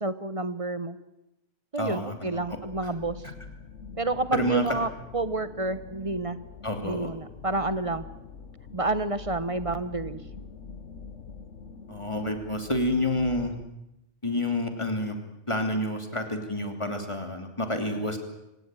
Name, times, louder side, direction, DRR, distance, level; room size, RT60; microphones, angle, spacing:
voice 1, 0.0-1.0 1.7-3.2 4.0-6.4 6.8-8.1 8.7-10.2, right 2 dB, 30° right, 13 dB, 1.1 m, -29 dB
voice 2, 1.8-2.6 4.3-4.8 6.6-7.1 11.9-13.5 14.2-15.2 15.5-18.2, left 1 dB, 25° left, 5 dB, 2.9 m, -29 dB
sound 1, 2.2-13.7, left 5 dB, 80° left, 1.4 m, -44 dB
25.0 x 18.0 x 9.0 m, 0.89 s
omnidirectional pair, 1.2 m